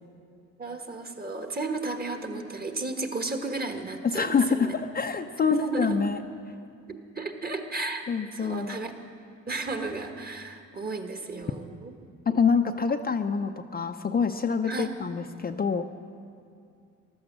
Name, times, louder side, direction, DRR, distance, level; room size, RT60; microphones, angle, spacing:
voice 1, 0.6-4.7 5.4-6.0 7.1-8.0 8.3-8.9 9.5-11.9 14.7-14.9, right 3 dB, 30° right, 5 dB, 1.5 m, -33 dB
voice 2, 4.0-6.2 8.1-8.8 12.3-15.8, left 5 dB, 30° left, 6 dB, 0.5 m, -26 dB
15.0 x 11.5 x 7.4 m, 2.4 s
cardioid pair, 90°, 30 cm